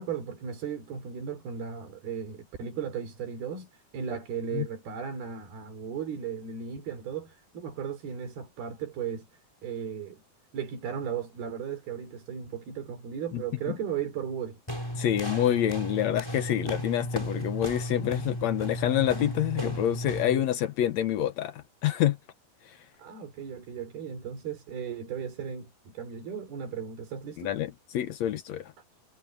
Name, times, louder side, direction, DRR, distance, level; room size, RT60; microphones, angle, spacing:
voice 1, 0.0-9.3 9.6-10.2 10.5-14.6 23.0-27.5, right 7 dB, 85° right, 5.9 m, -36 dB
sound 1, 14.7-20.5, equal, 5° left, 6.4 m, -34 dB
voice 2, 15.0-21.5 21.8-22.2 27.4-28.6, left 12 dB, 70° left, 1.7 m, -27 dB
omnidirectional pair, 4.3 m